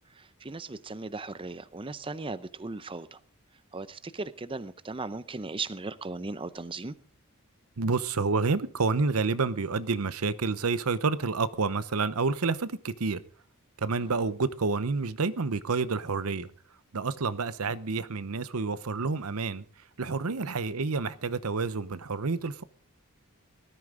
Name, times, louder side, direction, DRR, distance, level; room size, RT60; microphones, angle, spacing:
voice 1, 0.2-3.2 3.7-6.9 14.0-14.1, right 3 dB, 25° right, 0.6 m, -37 dB
voice 2, 7.8-13.2 13.8-16.5 16.9-19.6 20.0-22.6, right 4 dB, 80° right, 0.8 m, -29 dB
19.0 x 13.0 x 3.8 m
head